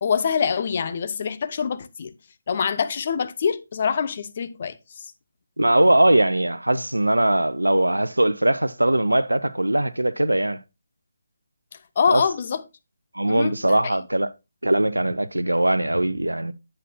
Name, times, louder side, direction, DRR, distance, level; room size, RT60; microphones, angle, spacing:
voice 1, 0.0-2.1 2.5-4.8 12.0-12.6 13.3-14.0, left 6 dB, 40° left, 0.6 m, -25 dB
voice 2, 5.6-10.6 12.1-12.2 13.1-14.3 14.6-16.5, right 1 dB, 80° right, 0.6 m, -20 dB
8.7 x 8.3 x 2.2 m
figure-of-eight pair, 150°, 0 cm